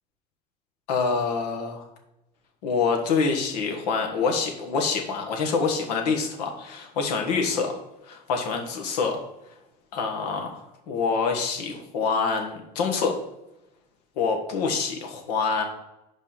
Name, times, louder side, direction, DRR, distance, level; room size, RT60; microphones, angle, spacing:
voice 1, 0.9-1.9 2.6-7.7 8.0-9.2 9.9-10.6 10.9-13.2 14.2-15.6, left 5 dB, 85° left, 3 dB, 1.4 m, -26 dB
5.3 x 5.0 x 5.7 m, 0.91 s
supercardioid pair, 85°, 20 cm